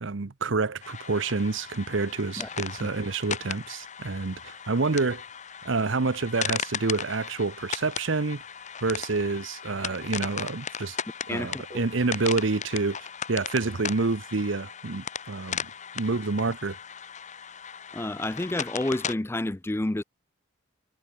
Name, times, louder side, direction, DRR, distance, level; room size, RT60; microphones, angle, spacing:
voice 1, 0.0-5.2 5.6-8.4 8.8-11.0 11.3-15.7 15.9-16.8, right 3 dB, 65° right, 0.8 m, -28 dB
sound 1, 0.8-19.1, left 7 dB, 35° left, 1.2 m, -37 dB
voice 2, 11.3-11.8 17.9-20.0, left 1 dB, 10° left, 0.4 m, -30 dB
head